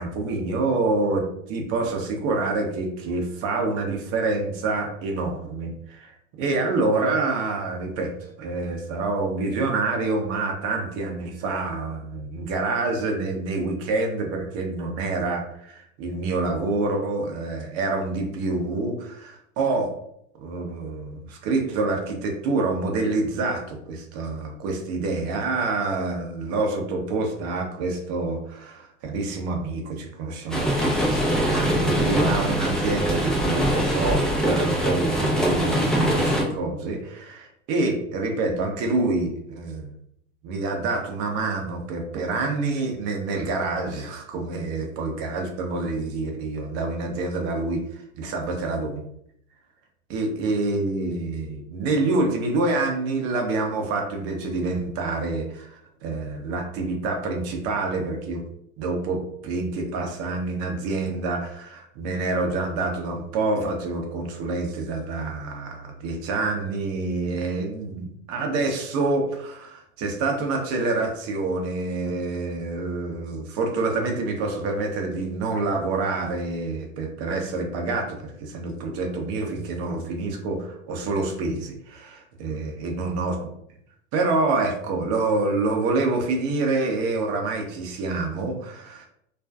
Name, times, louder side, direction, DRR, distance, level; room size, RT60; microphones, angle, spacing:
voice 1, 0.0-6.1 6.4-8.1 8.4-19.9 20.4-39.9 40.4-49.0 50.1-58.4 58.8-83.4 84.1-89.1, right 3 dB, 40° right, 2 dB, 0.6 m, -27 dB
sound 1, 30.5-36.4, equal, ahead, 0.4 m, -23 dB
2.4 x 2.2 x 2.3 m, 0.72 s
figure-of-eight pair, 90°, 37 cm